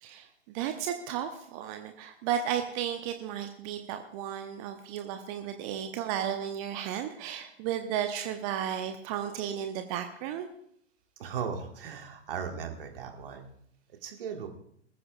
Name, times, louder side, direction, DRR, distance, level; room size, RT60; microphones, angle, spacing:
voice 1, 0.0-10.5, right 9 dB, 30° right, 7 dB, 0.9 m, -34 dB
voice 2, 11.2-13.4 14.0-14.5, right 7 dB, 50° right, 4 dB, 1.8 m, -37 dB
20.5 x 14.5 x 2.4 m, 0.71 s
figure-of-eight pair, 105°, 35 cm